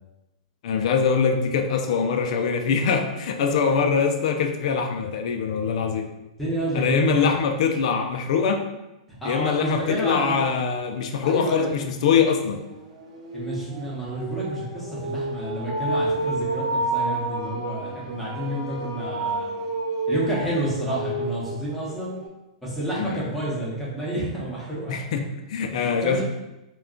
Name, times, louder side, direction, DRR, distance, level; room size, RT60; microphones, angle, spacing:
voice 1, 0.6-6.1 6.7-8.6 9.2-12.6 23.0-23.2 24.9-26.2, left 6 dB, 65° left, 5 dB, 0.4 m, -23 dB
voice 2, 6.4-7.3 9.2-10.5 11.2-11.7 13.3-19.5 20.1-22.1 22.6-25.0 25.7-26.2, right 1 dB, 5° left, -7 dB, 0.8 m, -29 dB
sound 1, 11.0-11.1 11.5-22.3, right 2 dB, 75° right, 1.0 m, -30 dB
2.3 x 2.2 x 3.6 m, 0.96 s
hypercardioid pair, 150°, 4 cm